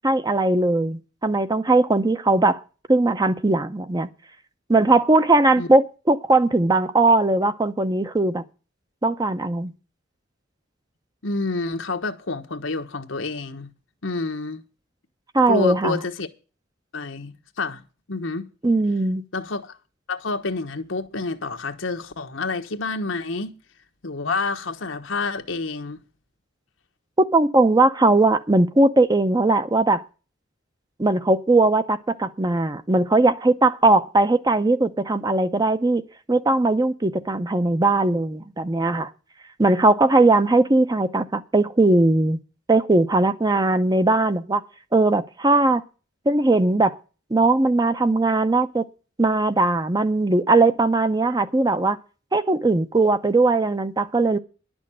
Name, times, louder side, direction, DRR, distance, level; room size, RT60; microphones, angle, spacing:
voice 1, 0.0-2.6 2.9-4.1 4.7-8.4 9.0-9.7 15.3-16.0 18.6-19.2 27.2-30.0 31.0-36.0 36.3-39.1 39.6-42.4 42.7-44.6 44.9-45.8 46.3-47.0 47.3-48.8 49.2-52.0 52.3-54.4, right 2 dB, 20° right, 0.7 m, -19 dB
voice 2, 11.2-13.7 14.0-14.6 15.5-16.3 16.9-17.8 18.1-18.5 19.3-19.8 20.1-23.5 24.0-26.0, left 3 dB, 90° left, 1.3 m, -28 dB
11.0 x 6.3 x 8.8 m
head